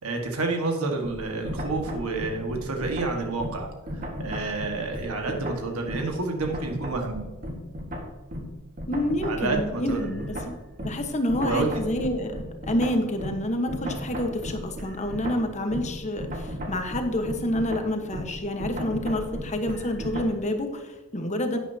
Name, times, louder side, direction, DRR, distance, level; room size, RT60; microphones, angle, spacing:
voice 1, 0.0-7.3 9.2-10.1 11.4-11.7, right 3 dB, 70° right, 3 dB, 1.7 m, -29 dB
sound 1, 1.0-6.1 6.4-20.4, equal, 40° right, 1.7 m, -35 dB
voice 2, 8.9-10.5 10.8-21.6, left 1 dB, 30° left, 5 dB, 1.2 m, -28 dB
11.5 x 9.1 x 2.8 m, 1.2 s
head